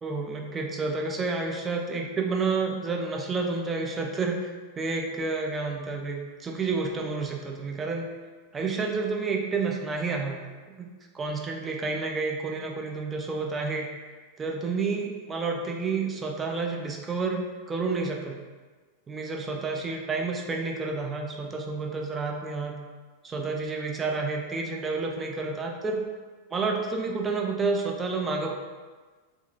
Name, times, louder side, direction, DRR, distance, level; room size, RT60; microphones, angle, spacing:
voice 1, 0.0-8.1 8.5-10.4 10.7-13.9 14.4-18.4 19.1-22.8 23.2-26.0 26.5-28.5, right 4 dB, 20° right, 1 dB, 0.4 m, -30 dB
2.9 x 2.3 x 2.5 m, 1.4 s
figure-of-eight pair, 90°, 0 cm